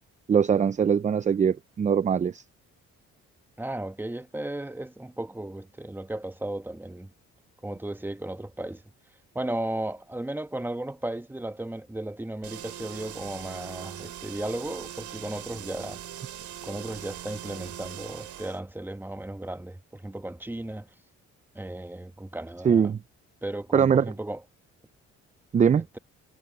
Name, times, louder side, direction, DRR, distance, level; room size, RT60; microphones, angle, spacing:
voice 1, 0.3-2.4 22.6-23.0 23.7-24.1 25.5-25.9, right 7 dB, 25° right, 0.4 m, -22 dB
voice 2, 3.6-7.1 7.6-8.8 9.3-16.0 16.6-20.9 21.5-22.9 23.4-24.4 25.7-26.0, right 1 dB, 5° right, 1.2 m, -35 dB
sound 1, 12.4-18.6, right 11 dB, 70° right, 2.9 m, -41 dB
cardioid pair, 90°, 30 cm